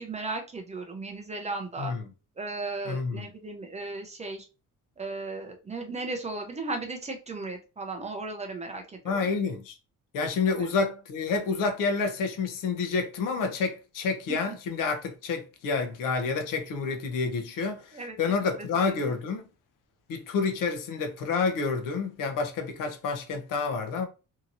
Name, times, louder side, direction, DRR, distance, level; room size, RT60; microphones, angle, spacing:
voice 1, 0.0-1.9 2.4-4.5 5.0-9.3 10.5-10.7 17.9-18.2 18.6-19.1, right 3 dB, 20° right, 0.5 m, -36 dB
voice 2, 1.8-2.1 2.9-3.3 9.0-9.8 10.1-19.4 20.1-24.1, left 4 dB, 70° left, 0.8 m, -29 dB
2.9 x 2.7 x 2.5 m
cardioid pair, 140°, 33 cm